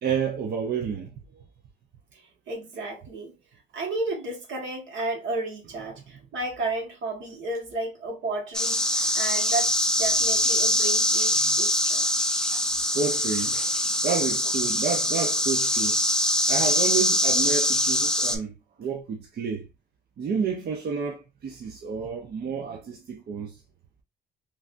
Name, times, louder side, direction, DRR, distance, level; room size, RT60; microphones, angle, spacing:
voice 1, 0.0-1.5 12.5-12.6 12.9-16.0 16.5-19.7 20.2-23.6, right 6 dB, 50° right, 0.6 m, -30 dB
voice 2, 2.1-3.3 3.7-12.3, right 2 dB, 70° right, 1.4 m, -33 dB
sound 1, 8.5-18.4, left 1 dB, 5° left, 0.4 m, -23 dB
3.2 x 2.4 x 2.5 m
cardioid pair, 90°, 20 cm